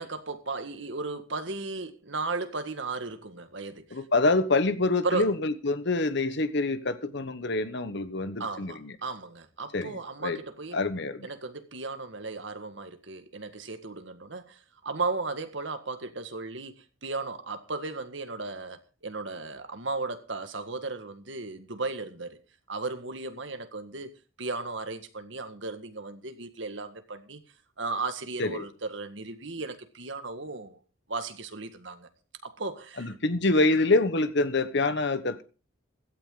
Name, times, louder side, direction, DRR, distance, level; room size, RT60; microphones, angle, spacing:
voice 1, 0.0-4.0 5.0-5.3 8.4-10.8 11.2-18.8 19.0-22.4 22.7-24.1 24.4-27.4 27.8-30.8 31.1-32.1 32.4-33.2 33.7-33.8, right 3 dB, 65° right, 1.8 m, -35 dB
voice 2, 3.9-8.9 9.7-10.4 10.7-11.3 28.4-28.6 33.0-35.4, left 2 dB, 60° left, 1.2 m, -26 dB
16.0 x 13.0 x 3.9 m
head